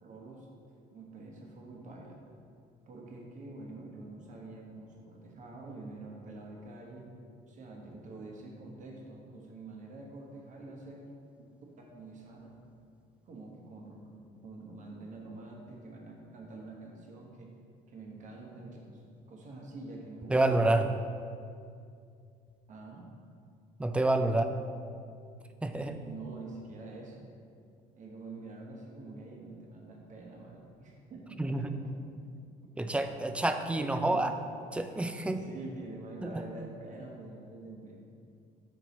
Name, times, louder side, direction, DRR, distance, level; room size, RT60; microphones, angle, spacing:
voice 1, 0.0-0.5 0.9-2.2 2.9-7.1 7.5-11.1 11.9-12.6 13.3-17.5 17.9-19.0 19.3-20.6 22.7-23.0 24.2-24.4 25.8-27.3 27.9-31.6 31.8-32.1 33.8-34.3 35.2-38.0, right 2 dB, 50° right, -1 dB, 1.1 m, -46 dB
voice 2, 20.3-20.9 23.8-24.4 25.6-25.9 31.4-31.6 32.8-34.3 34.7-35.4, right 2 dB, 5° right, 7 dB, 0.3 m, -28 dB
5.9 x 4.4 x 4.0 m, 2.3 s
cardioid pair, 110°, 17 cm